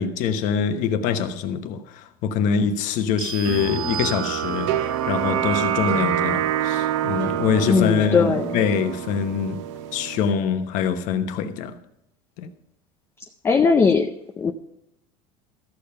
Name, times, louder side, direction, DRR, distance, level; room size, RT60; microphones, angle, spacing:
voice 1, 0.0-9.6 9.9-11.7 12.4-12.5, left 7 dB, 55° left, 1.1 m, -24 dB
sound 1, 3.2-4.9, right 9 dB, 30° right, 0.9 m, -34 dB
sound 2, 3.4-10.3, right 10 dB, 85° right, 0.9 m, -26 dB
voice 2, 7.7-8.6 13.4-14.5, left 5 dB, 15° left, 0.5 m, -19 dB
13.5 x 6.9 x 5.6 m
cardioid pair, 145°, 15 cm